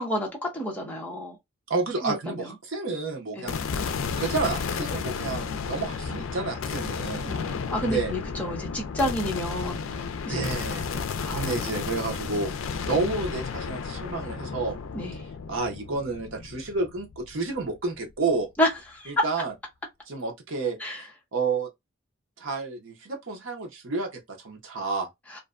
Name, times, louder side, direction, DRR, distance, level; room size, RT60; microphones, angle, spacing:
voice 1, 0.0-1.3 2.0-2.5 3.4-3.6 7.3-10.5 11.2-11.5 14.9-15.2 18.6-18.7 18.9-19.1 20.8-21.0, left 1 dB, 5° left, 0.7 m, -30 dB
voice 2, 1.7-3.6 4.2-7.3 7.8-8.1 10.3-11.0 11.3-12.5 12.8-14.8 15.5-18.5 19.1-19.5 20.1-20.8 21.3-21.7 22.4-25.1, right 3 dB, 65° right, 0.8 m, -30 dB
sound 1, 3.5-17.8, left 5 dB, 70° left, 0.4 m, -33 dB
2.5 x 2.1 x 2.4 m
head